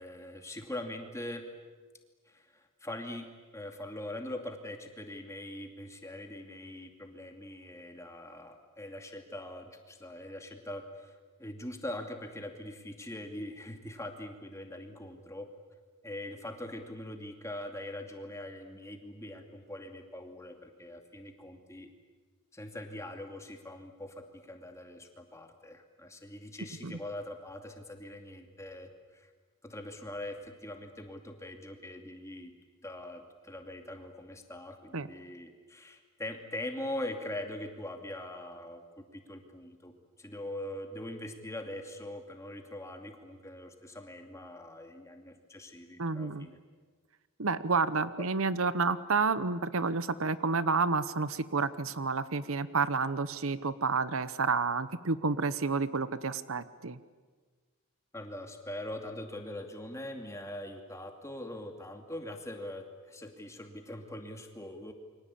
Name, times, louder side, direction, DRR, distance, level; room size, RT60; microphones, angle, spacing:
voice 1, 0.0-1.4 2.3-3.3 3.5-15.5 16.0-21.9 22.5-29.3 29.6-32.5 32.8-39.9 40.2-46.6 48.2-48.3 58.1-64.9, left 1 dB, 15° left, 4 dB, 2.6 m, -42 dB
voice 2, 46.0-46.5 47.4-57.0, right 4 dB, 65° right, 14 dB, 0.9 m, -30 dB
28.5 x 24.5 x 8.5 m, 1.4 s
head